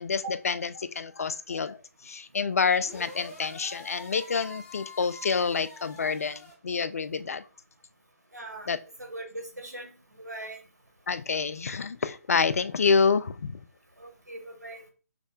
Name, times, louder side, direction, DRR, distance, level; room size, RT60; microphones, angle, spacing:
voice 1, 0.0-7.4 8.7-8.8 11.1-13.6, left 5 dB, 65° left, 0.4 m, -28 dB
sound 1, 2.8-6.5, left 2 dB, 10° left, 1.0 m, -46 dB
voice 2, 8.3-8.7 9.0-9.9 10.2-10.6 14.0-14.9, right 1 dB, 90° right, 1.1 m, -40 dB
5.8 x 2.1 x 2.4 m
figure-of-eight pair, 145°, 9 cm